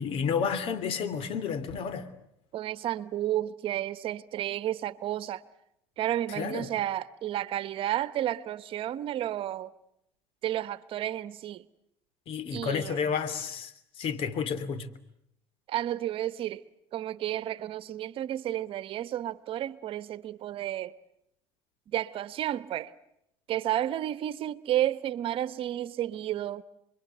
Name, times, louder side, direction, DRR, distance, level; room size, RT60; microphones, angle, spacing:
voice 1, 0.0-2.1 6.3-6.7 12.3-14.9, left 6 dB, 60° left, 3.1 m, -31 dB
voice 2, 2.5-5.4 6.0-9.7 10.4-11.6 12.5-13.0 15.7-16.6 16.9-20.9 21.9-22.9 23.5-26.6, right 12 dB, 55° right, 1.2 m, -31 dB
29.0 x 22.5 x 8.0 m
supercardioid pair, 90°, 11 cm